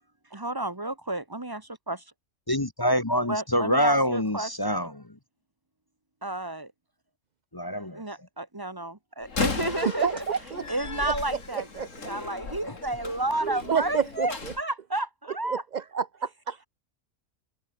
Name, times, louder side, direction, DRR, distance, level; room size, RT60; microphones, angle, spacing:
voice 1, 0.3-2.0 3.3-4.9 6.2-6.7 7.9-10.2 10.7-15.6, right 2 dB, 15° right, 1.0 m, -32 dB
voice 2, 2.5-5.1 7.5-8.0, equal, 20° left, 1.0 m, -25 dB
Slam, 9.2-14.6, left 4 dB, 60° left, 2.7 m, -36 dB
voice 3, 9.8-10.6 11.0-11.9 13.4-14.3 15.5-16.6, right 6 dB, 80° right, 0.4 m, -29 dB
omnidirectional pair, 1.5 m